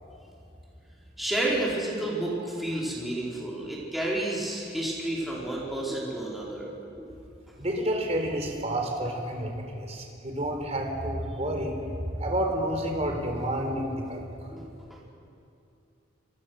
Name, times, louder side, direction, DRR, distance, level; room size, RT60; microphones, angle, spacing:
voice 1, 1.2-6.7 7.0-7.1 14.5-14.6, right 1 dB, ahead, -6 dB, 4.6 m, -30 dB
voice 2, 7.6-11.7 12.2-14.2, right 1 dB, 35° right, 2 dB, 4.2 m, -29 dB
28.0 x 24.0 x 6.5 m, 2.6 s
head